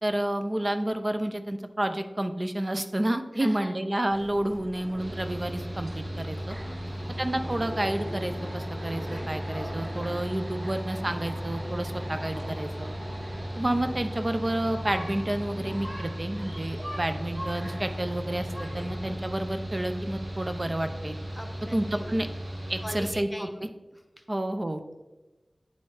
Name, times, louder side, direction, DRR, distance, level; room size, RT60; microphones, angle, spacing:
voice 1, 0.0-6.6 7.2-12.9 13.6-21.2 21.7-22.3 22.7-23.5 24.3-24.8, right 1 dB, 35° right, 8 dB, 0.6 m, -30 dB
voice 2, 3.3-3.8 6.7-7.2 21.3-22.2 22.8-23.7 23.9-24.3, left 1 dB, 15° left, 5 dB, 0.9 m, -42 dB
sound 1, 4.1-19.1, equal, 50° right, 1.7 m, -41 dB
Mechanical fan, 5.0-23.1, equal, 75° right, 1.7 m, -36 dB
9.6 x 3.9 x 3.3 m, 1.1 s
wide cardioid pair, 45°, 0 cm